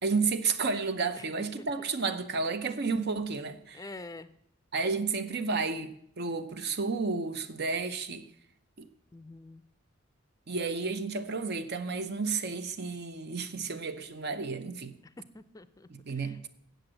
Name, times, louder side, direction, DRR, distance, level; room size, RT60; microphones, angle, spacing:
voice 1, 0.0-3.9 4.7-8.3 8.8-8.9 10.5-14.9 15.9-16.5, right 4 dB, 55° right, 0.7 m, -32 dB
voice 2, 3.7-4.3 9.1-9.6 15.3-15.9, left 2 dB, 20° left, 0.5 m, -45 dB
8.0 x 7.7 x 7.8 m
head